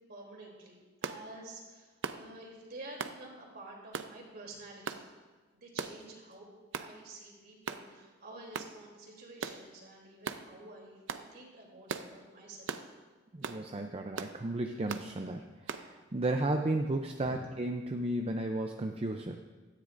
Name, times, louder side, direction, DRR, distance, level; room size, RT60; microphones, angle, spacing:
voice 1, 0.1-5.0 5.5-6.5 6.8-12.7 17.2-17.4, right 2 dB, 55° right, -2 dB, 3.2 m, -49 dB
sound 1, 1.0-1.2 2.0-2.2 3.0-3.2 3.9-4.1 4.9-5.0 5.8-6.0 6.7-6.9 7.7-7.9 8.5-8.7 9.4-9.6 10.2-10.4 11.1-11.3 11.9-12.1 12.7-12.9 13.4-13.6 14.2-14.4 14.9-15.1 15.7-15.9, right 5 dB, 80° right, 0.6 m, -38 dB
voice 2, 13.3-19.4, right 2 dB, 30° right, 4 dB, 0.5 m, -34 dB
17.0 x 13.0 x 2.6 m, 1.3 s
head